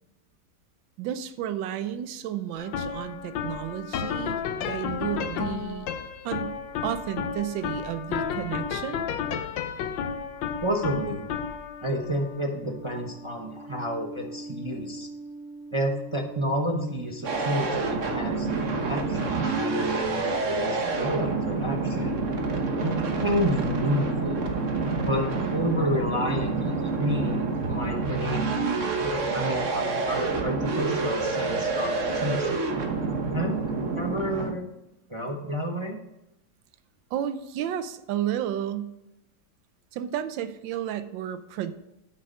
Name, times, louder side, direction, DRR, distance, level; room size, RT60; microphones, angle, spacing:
voice 1, 1.0-4.4 4.7-5.9 6.2-6.6 6.8-9.0 37.1-39.0 39.9-41.7, right 10 dB, 90° right, 11 dB, 1.4 m, -32 dB
sound 1, 2.6-19.8, left 6 dB, 85° left, 1.5 m, -34 dB
voice 2, 10.6-11.3 11.8-15.1 15.7-22.2 22.8-24.4 25.0-32.7 33.3-34.6 35.1-36.0, equal, 25° right, 1 dB, 0.7 m, -30 dB
sound 2, 17.2-34.5, right 3 dB, 50° right, 1.3 m, -28 dB
8.5 x 6.4 x 5.4 m, 0.89 s
omnidirectional pair, 2.0 m